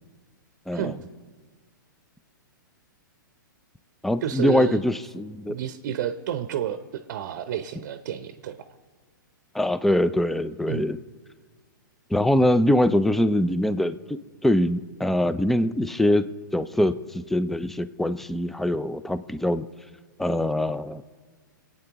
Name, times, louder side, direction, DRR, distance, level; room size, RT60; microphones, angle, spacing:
voice 1, 0.7-1.1 4.2-4.8 5.5-8.7 10.7-10.9, right 10 dB, 55° right, 11 dB, 0.7 m, -30 dB
voice 2, 4.0-5.6 9.5-11.0 12.1-19.7 20.2-21.0, left 1 dB, ahead, 14 dB, 0.4 m, -23 dB
24.0 x 9.0 x 3.0 m, 1.5 s
hypercardioid pair, 125°, 11 cm